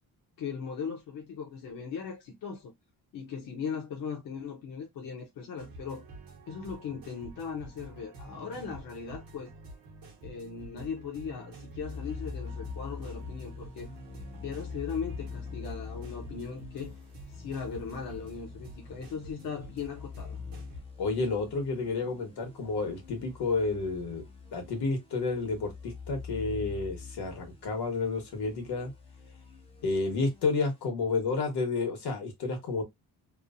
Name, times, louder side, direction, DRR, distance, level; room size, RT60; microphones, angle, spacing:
voice 1, 0.4-2.7 3.1-6.0 6.5-9.5 10.2-13.9 14.4-17.0 17.3-20.4, left 6 dB, 60° left, 0.7 m, -38 dB
sound 1, 5.6-20.8, right 2 dB, 65° right, 0.9 m, -48 dB
sound 2, 11.8-30.9, left 5 dB, 15° left, 0.4 m, -44 dB
voice 2, 21.0-24.3 24.5-28.9 29.8-32.8, left 3 dB, 80° left, 1.2 m, -30 dB
3.0 x 2.0 x 2.5 m
wide cardioid pair, 180°, 38 cm